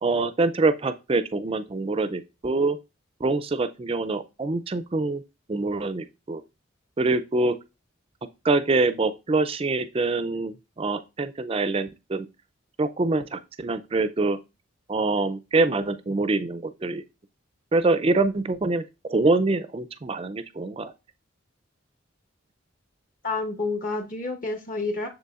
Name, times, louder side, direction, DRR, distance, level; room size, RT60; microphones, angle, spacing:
voice 1, 0.0-2.8 3.2-5.2 5.5-6.4 7.0-7.6 8.4-12.3 12.8-14.4 14.9-17.0 17.7-18.8 19.1-20.9, right 3 dB, 25° right, 0.3 m, -25 dB
voice 2, 23.2-25.1, left 3 dB, 40° left, 1.1 m, -29 dB
6.8 x 6.7 x 2.4 m
head